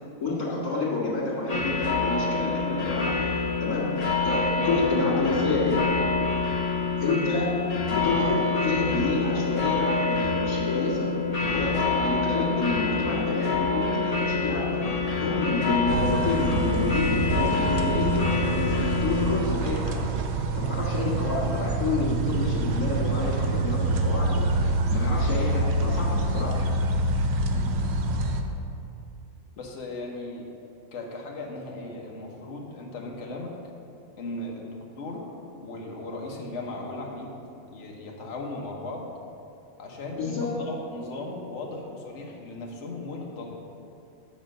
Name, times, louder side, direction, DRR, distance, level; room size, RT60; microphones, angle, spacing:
voice 1, 0.2-3.2 3.6-4.0 4.2-5.8 7.0-11.1 11.5-14.8 15.2-20.1 20.6-24.5 24.9-26.6 40.2-40.5, left 3 dB, 80° left, -5 dB, 2.4 m, -29 dB
sound 1, 1.5-19.4, left 4 dB, 35° left, 0.7 m, -26 dB
sound 2, 15.9-28.4, right 2 dB, 60° right, 0.7 m, -26 dB
voice 2, 29.6-30.5 30.9-33.5 34.2-35.3 35.6-37.4 37.7-39.1 39.8-43.7, left 2 dB, 55° left, -1 dB, 1.3 m, -37 dB
7.2 x 5.1 x 6.3 m, 2.6 s
omnidirectional pair, 1.6 m